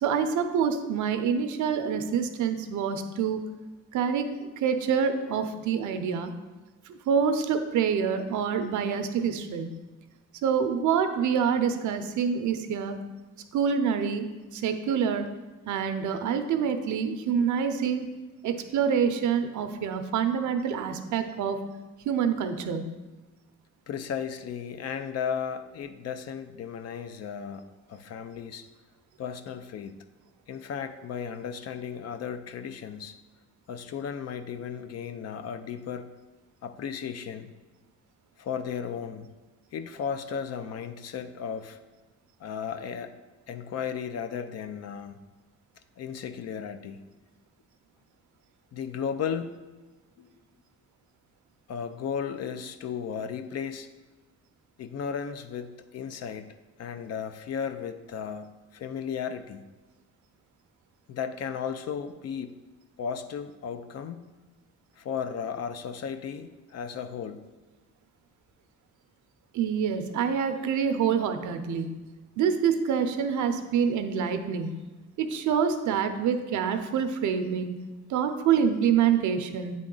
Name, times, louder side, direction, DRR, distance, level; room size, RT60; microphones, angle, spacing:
voice 1, 0.0-3.5 3.9-6.3 6.9-9.9 10.4-13.0 13.5-15.3 15.7-18.1 18.4-21.6 22.1-23.0 69.5-72.0 72.4-74.8 75.2-77.8 78.1-79.7, right 7 dB, 75° right, 8 dB, 0.7 m, -26 dB
voice 2, 23.9-28.7 29.2-29.9 30.5-33.2 33.7-36.1 36.6-37.5 38.4-39.3 39.7-41.8 42.4-43.1 43.5-45.2 46.0-47.0 48.7-49.5 50.2-50.3 51.7-53.9 54.8-56.5 56.8-59.7 61.1-62.6 63.0-64.3 65.0-67.5, left 7 dB, 55° left, 10 dB, 0.5 m, -35 dB
8.5 x 3.7 x 3.8 m, 1.2 s
cardioid pair, 90°, 30 cm